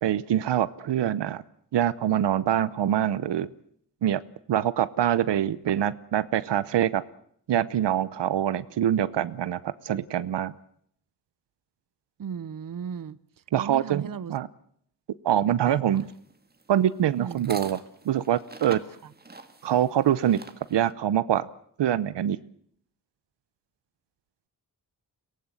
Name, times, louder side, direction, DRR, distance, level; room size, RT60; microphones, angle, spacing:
voice 1, 0.0-1.4 1.7-3.5 4.0-4.2 4.5-7.0 7.5-10.5 13.5-14.5 15.2-16.0 16.7-17.8 18.1-18.8 19.6-20.4 20.7-21.5 21.8-22.4, right 10 dB, 80° right, 0.8 m, -24 dB
voice 2, 12.2-13.2 13.6-14.3 15.6-16.0 17.2-17.4, right 7 dB, 55° right, 0.9 m, -36 dB
sound 1, 15.9-20.9, right 3 dB, 25° right, 1.8 m, -45 dB
23.0 x 18.0 x 7.8 m
cardioid pair, 80°, 41 cm